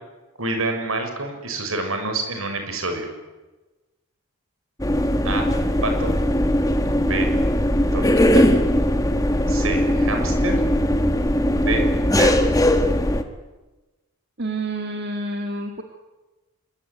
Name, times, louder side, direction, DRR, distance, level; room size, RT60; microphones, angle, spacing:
voice 1, 0.4-3.1 5.2-5.4 5.8-6.1 7.0-7.3 7.9-8.5 9.5-10.6 11.6-11.9 12.2-12.5, right 2 dB, 70° right, 5 dB, 6.7 m, -27 dB
sound 1, 4.8-13.2, left 1 dB, 15° left, 1.7 m, -19 dB
voice 2, 14.4-15.8, right 2 dB, 45° right, 4 dB, 2.2 m, -29 dB
26.5 x 23.0 x 9.7 m, 1.2 s
head